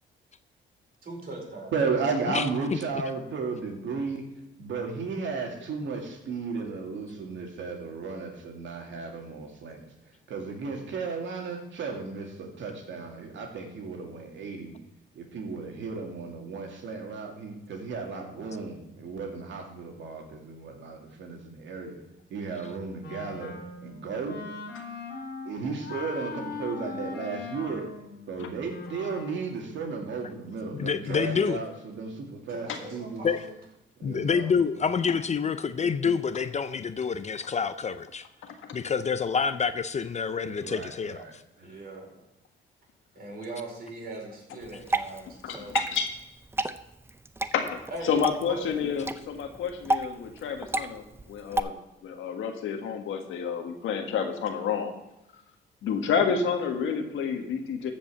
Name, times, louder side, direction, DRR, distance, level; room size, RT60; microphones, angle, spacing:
voice 1, 1.0-1.7 31.0-31.3 32.5-33.5 41.6-42.1 43.1-45.7 47.9-48.1 48.5-48.6, right 2 dB, 50° right, -2 dB, 4.9 m, -40 dB
voice 2, 1.7-4.2 4.6-9.9 10.3-14.7 15.2-22.0 22.3-23.5 23.8-24.4 25.5-27.9 28.3-33.2 34.0-34.5 40.4-41.3 41.6-41.7, right 4 dB, 70° right, 2 dB, 2.2 m, -34 dB
Wind instrument woodwind instrument, 23.0-29.6, left 4 dB, 60° left, 2.5 m, -40 dB
voice 3, 30.7-31.6 33.2-33.4 34.0-38.3 38.7-41.4, left 6 dB, 35° left, 12 dB, 0.5 m, -27 dB
Water / Drip, 44.6-51.6, right 2 dB, 10° right, 0.5 m, -32 dB
voice 4, 45.4-46.1 47.5-47.8 48.0-51.7 52.0-54.9 55.8-57.9, left 6 dB, 80° left, 5 dB, 1.6 m, -29 dB
14.0 x 5.4 x 6.8 m, 0.90 s
cardioid pair, 90°, 20 cm